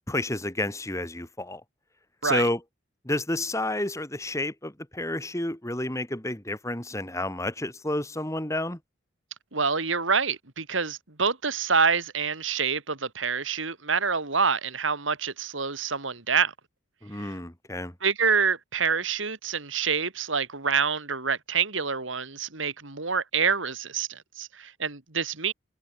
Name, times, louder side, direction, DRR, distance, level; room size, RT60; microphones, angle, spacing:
voice 1, 0.1-1.6 2.2-2.6 3.0-8.8 17.0-17.9, left 1 dB, 15° left, 2.6 m, -30 dB
voice 2, 9.5-16.5 17.2-17.3 18.0-25.5, right 5 dB, 75° right, 2.9 m, -27 dB
head